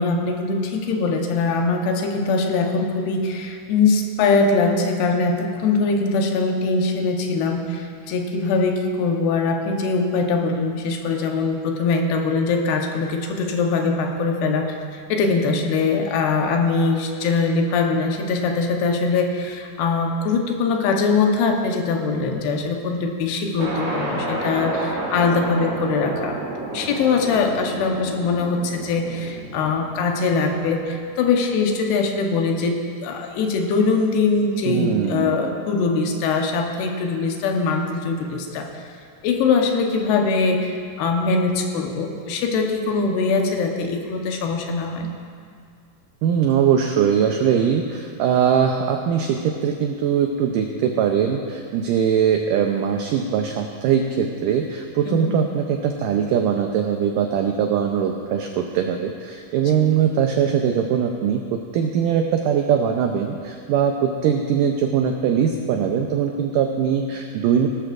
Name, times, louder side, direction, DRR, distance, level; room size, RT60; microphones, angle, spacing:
voice 1, 0.0-26.4 26.7-38.8 39.2-45.1 55.1-55.3 59.6-59.7, left 4 dB, 80° left, 2 dB, 3.0 m, -22 dB
sound 1, 23.6-31.1, right 2 dB, 45° right, 2.5 m, -31 dB
voice 2, 34.7-35.3 46.2-67.7, right 8 dB, 90° right, 3 dB, 1.9 m, -21 dB
18.5 x 12.5 x 2.5 m, 2.2 s
omnidirectional pair, 4.6 m